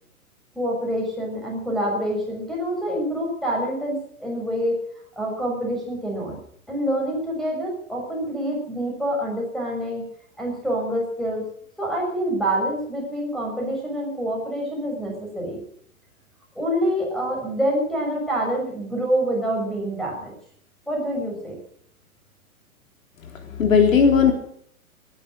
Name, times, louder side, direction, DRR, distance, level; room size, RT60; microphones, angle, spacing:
voice 1, 0.5-4.8 5.2-6.4 6.7-10.1 10.4-11.5 11.8-15.6 16.5-20.3 20.9-21.6, equal, ahead, -1 dB, 6.3 m, -26 dB
voice 2, 23.2-24.3, left 6 dB, 60° left, 4 dB, 3.5 m, -17 dB
19.0 x 11.5 x 6.4 m, 0.63 s
figure-of-eight pair, 120°, 44 cm